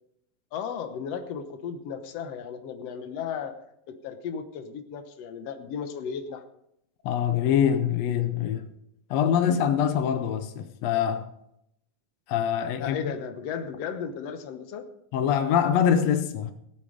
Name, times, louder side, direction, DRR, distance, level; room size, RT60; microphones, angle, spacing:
voice 1, 0.5-3.6 3.9-6.4 12.8-14.9, left 7 dB, 65° left, 1.7 m, -35 dB
voice 2, 7.0-8.7 9.1-11.3 12.3-13.0 15.1-16.5, left 8 dB, 85° left, 1.4 m, -24 dB
18.0 x 8.6 x 5.1 m
omnidirectional pair, 4.0 m